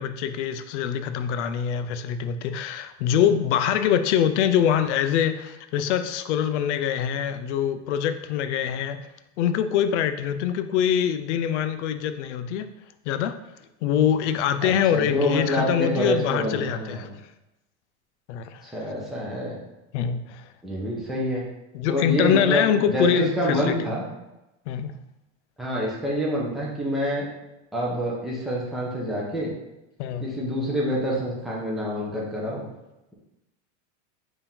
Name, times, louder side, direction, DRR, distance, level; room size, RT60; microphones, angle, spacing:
voice 1, 0.0-9.0 9.4-12.7 13.1-13.3 13.8-17.1 18.3-18.6 19.9-20.5 21.7-23.9 24.7-25.0 30.0-30.3, left 9 dB, 90° left, 9 dB, 0.5 m, -24 dB
voice 2, 14.6-17.0 18.6-19.6 20.6-21.4 21.9-24.0 25.6-27.3 27.7-29.5 30.2-32.7, equal, ahead, -5 dB, 0.8 m, -27 dB
4.4 x 2.8 x 3.6 m, 0.95 s
supercardioid pair, 140°, 34 cm